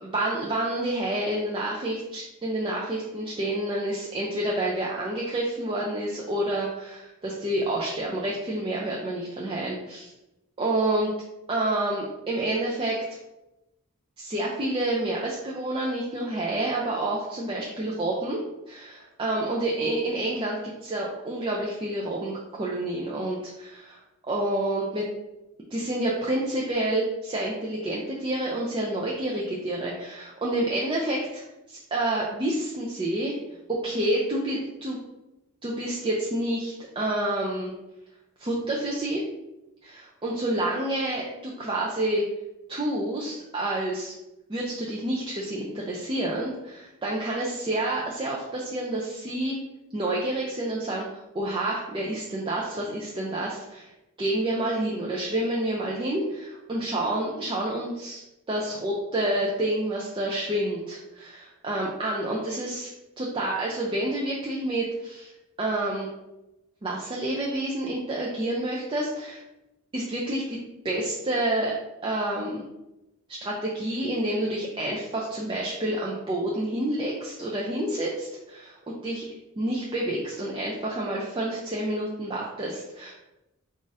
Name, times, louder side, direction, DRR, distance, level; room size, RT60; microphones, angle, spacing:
voice 1, 0.0-10.1 10.6-11.1 11.5-13.0 14.2-18.4 18.7-24.0 24.3-25.1 25.7-31.4 31.7-33.4 33.7-35.0 35.6-37.7 38.4-39.2 39.8-42.2 42.7-44.1 44.5-49.6 49.9-53.9 54.2-58.2 58.5-62.9 63.2-65.3 65.6-66.1 66.8-69.4 69.9-70.6 70.8-71.8 72.0-72.6 73.3-79.3 79.6-83.1, right 1 dB, 25° right, -4 dB, 0.4 m, -28 dB
3.7 x 2.5 x 4.0 m, 0.95 s
head